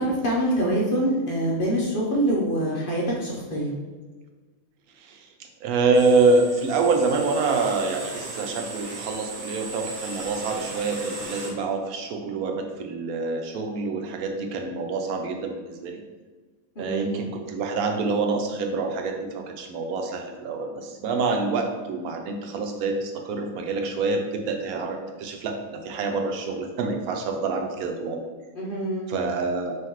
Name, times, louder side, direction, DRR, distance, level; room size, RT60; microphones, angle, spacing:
voice 1, 0.0-3.7 16.8-17.2 28.6-29.1, right 1 dB, 45° left, -4 dB, 0.8 m, -25 dB
voice 2, 5.0-16.0 16.8-28.2 29.1-29.8, right 3 dB, 85° right, 4 dB, 1.1 m, -26 dB
sound 1, 5.9-11.5, right 2 dB, 45° right, 0.7 m, -37 dB
5.6 x 3.0 x 3.0 m, 1.4 s
omnidirectional pair, 1.5 m